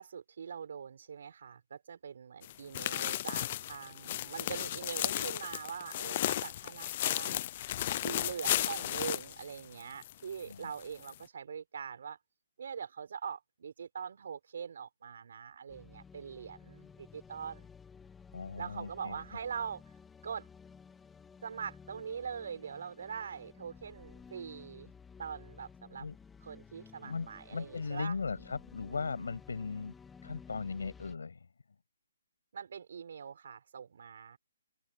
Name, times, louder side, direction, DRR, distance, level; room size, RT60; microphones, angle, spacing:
voice 1, 0.0-7.4 8.0-12.2 12.6-17.7 18.6-19.8 20.2-20.5 21.4-24.9 25.2-26.1 26.4-28.2 32.5-34.4, right 7 dB, 45° right, 6.1 m, -43 dB
sound 1, 2.4-10.1 10.4-10.5 11.0-11.1, left 13 dB, 25° left, 0.5 m, -34 dB
sound 2, 15.7-31.1, left 6 dB, 5° left, 2.6 m, -55 dB
voice 2, 18.3-19.1 26.0-26.1 27.0-29.9 30.2-31.4, left 4 dB, 80° left, 6.8 m, -38 dB
hypercardioid pair, 180°, 0 cm